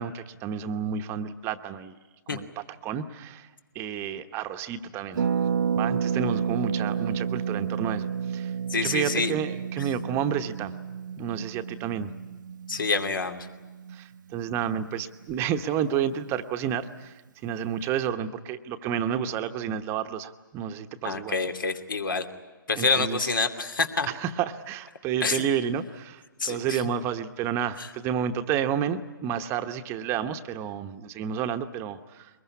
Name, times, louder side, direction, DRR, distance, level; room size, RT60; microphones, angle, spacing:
voice 1, 0.0-1.9 2.3-2.4 2.8-3.5 3.7-5.2 5.8-8.5 8.8-10.7 11.2-12.1 13.9-17.1 17.4-21.4 22.7-23.3 24.1-32.3, right 8 dB, 20° right, 9 dB, 1.0 m, -30 dB
Harp, 5.2-14.8 15.0-15.1 15.3-15.6, right 7 dB, 60° right, 0.7 m, -31 dB
voice 2, 8.7-9.4 12.7-13.5 21.0-22.2 22.7-24.1 25.2-25.4 26.4-26.9 27.8-27.9, left 4 dB, 75° left, 7 dB, 2.7 m, -27 dB
23.0 x 21.0 x 9.8 m, 1.3 s
figure-of-eight pair, 135°, 11 cm